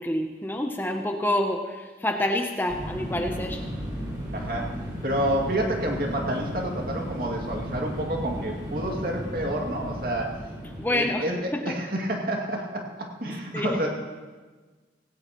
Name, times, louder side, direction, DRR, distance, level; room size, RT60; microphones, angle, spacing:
voice 1, 0.0-3.6 10.8-11.3 11.5-11.8 13.5-13.8, left 1 dB, 10° left, 4 dB, 0.7 m, -27 dB
sound 1, 2.7-10.8, equal, 25° right, 5.3 m, -34 dB
voice 2, 4.3-4.7 5.0-10.3 10.9-11.4 11.6-13.9, right 1 dB, 55° right, 0 dB, 2.4 m, -29 dB
17.5 x 17.0 x 3.0 m, 1.4 s
head